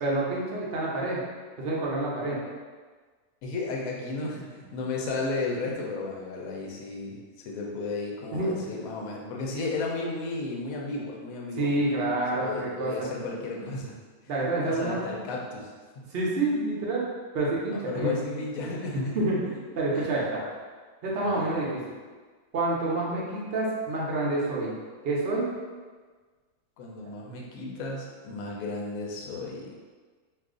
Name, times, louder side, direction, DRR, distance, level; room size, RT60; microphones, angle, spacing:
voice 1, 0.0-1.2 1.6-2.4 8.3-8.6 11.6-13.1 14.3-15.0 16.1-17.1 17.3-18.1 18.9-20.4 21.0-21.8 22.5-24.7 25.0-25.5, right 2 dB, 55° right, -4 dB, 0.7 m, -28 dB
voice 2, 3.4-7.2 7.4-13.9 14.6-16.0 17.7-19.2 19.9-20.2 21.2-21.6 26.8-29.7, left 3 dB, 70° left, -1 dB, 0.9 m, -34 dB
2.6 x 2.4 x 3.7 m, 1.5 s
omnidirectional pair, 1.7 m